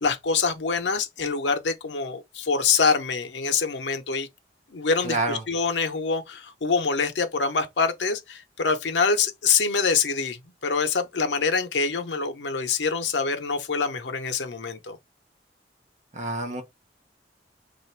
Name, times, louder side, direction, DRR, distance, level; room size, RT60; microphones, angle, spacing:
voice 1, 0.0-4.3 4.7-15.0, left 5 dB, 90° left, 0.7 m, -25 dB
voice 2, 5.0-5.4 16.1-16.6, right 2 dB, 40° right, 0.8 m, -28 dB
3.3 x 2.5 x 4.4 m
head